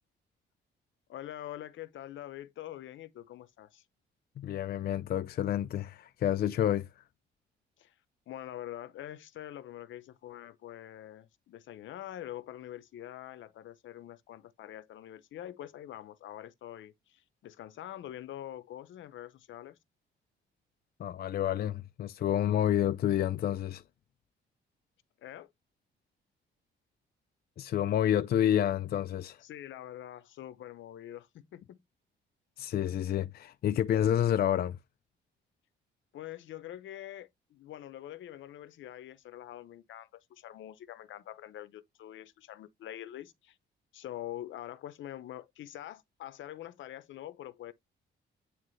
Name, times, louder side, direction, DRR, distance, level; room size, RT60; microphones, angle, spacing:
voice 1, 1.1-3.8 7.8-7.9 8.3-19.8 25.2-25.5 29.4-31.8 36.1-43.6 43.9-47.7, left 12 dB, 75° left, 0.8 m, -45 dB
voice 2, 4.4-6.9 21.0-23.8 27.6-29.4 32.6-34.8, left 10 dB, 50° left, 0.4 m, -29 dB
9.3 x 3.2 x 3.2 m
cardioid pair, 90°, 20 cm